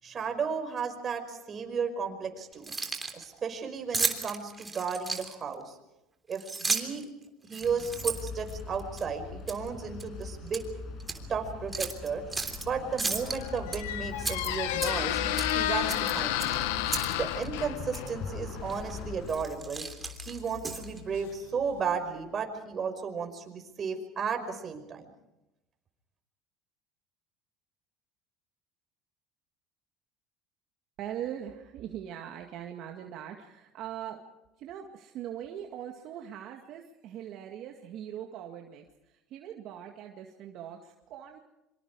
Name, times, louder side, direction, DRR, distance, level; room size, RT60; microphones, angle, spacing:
voice 1, 0.0-2.7 3.1-5.8 6.3-7.1 7.5-10.7 11.3-12.2 12.6-15.2 15.5-16.7 17.2-19.9 20.3-25.1, right 6 dB, 35° right, 5 dB, 5.5 m, -34 dB
Keys jangling, 2.5-3.2 3.9-5.5 6.3-7.0 7.5-9.0 9.5-9.7 10.0-10.6 11.0-11.2 11.7-12.6 13.0-13.8 14.2-15.1 15.4-15.6 15.9-17.1 17.4-17.5 17.9-18.1 18.7-18.9 19.3-21.0, right 4 dB, 20° right, 3.3 m, -34 dB
sound 1, 7.6-19.4, left 4 dB, 50° left, 5.9 m, -41 dB
Squeak, 13.0-21.8, left 12 dB, 85° left, 1.5 m, -33 dB
voice 2, 31.0-34.2 34.6-41.4, right 10 dB, 60° right, 2 dB, 2.1 m, -41 dB
26.5 x 25.5 x 4.9 m, 0.94 s
supercardioid pair, 100°, 0 cm